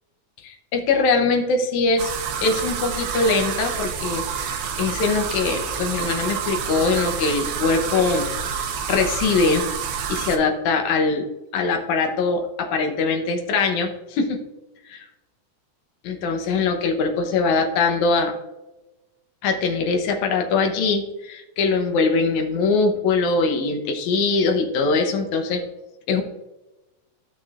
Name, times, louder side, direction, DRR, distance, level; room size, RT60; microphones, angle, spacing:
voice 1, 0.4-2.1 2.4-9.7 10.1-11.3 11.5-14.4 14.9-15.1 16.0-18.3 19.4-25.6 26.1-26.2, left 4 dB, 85° left, 4 dB, 2.4 m, -22 dB
sound 1, 2.0-10.4, right 7 dB, 70° right, 1.5 m, -28 dB
14.0 x 6.1 x 2.5 m, 1.0 s
omnidirectional pair, 3.3 m